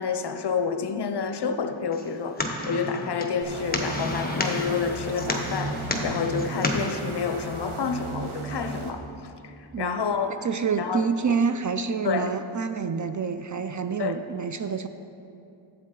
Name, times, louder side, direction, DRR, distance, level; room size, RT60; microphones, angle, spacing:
voice 1, 0.0-9.0 9.4-10.4 10.8-11.0 12.0-12.3 14.0-14.2, left 6 dB, 55° left, 7 dB, 0.7 m, -29 dB
sound 1, 1.9-6.9, left 1 dB, 20° left, 1.0 m, -31 dB
sound 2, 3.4-8.9, right 4 dB, 80° right, 1.1 m, -36 dB
voice 2, 10.4-14.9, right 5 dB, 40° right, 9 dB, 0.4 m, -27 dB
11.5 x 8.0 x 3.8 m, 2.6 s
wide cardioid pair, 80°, 49 cm